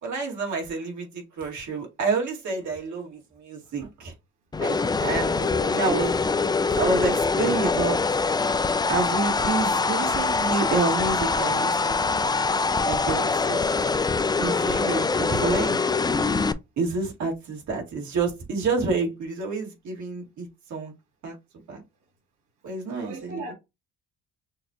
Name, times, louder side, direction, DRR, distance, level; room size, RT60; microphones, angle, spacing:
voice 1, 0.0-4.1 4.6-5.4 5.7-6.1 6.8-8.0 8.9-12.0 12.8-13.6 14.1-15.8 16.8-20.9 21.2-21.4 21.7-21.8 22.6-23.4, right 4 dB, 70° right, 2.2 m, -28 dB
sound 1, 4.5-16.5, left 4 dB, 15° left, 0.3 m, -24 dB
voice 2, 5.3-6.0 6.7-6.8 23.0-23.5, right 4 dB, 90° right, 2.7 m, -36 dB
6.2 x 2.4 x 2.9 m
cardioid pair, 90°, 30 cm